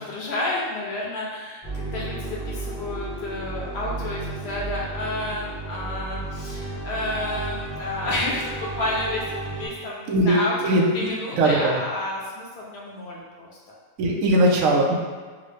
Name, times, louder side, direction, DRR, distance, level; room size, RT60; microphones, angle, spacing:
voice 1, 0.0-13.5, left 2 dB, 65° left, -4 dB, 0.7 m, -30 dB
sound 1, 1.6-9.7, right 3 dB, 25° left, 0.7 m, -33 dB
voice 2, 10.1-11.1 11.4-11.8 14.0-15.0, right 1 dB, 80° right, -1 dB, 1.0 m, -20 dB
3.6 x 2.0 x 3.1 m, 1.5 s
omnidirectional pair, 1.4 m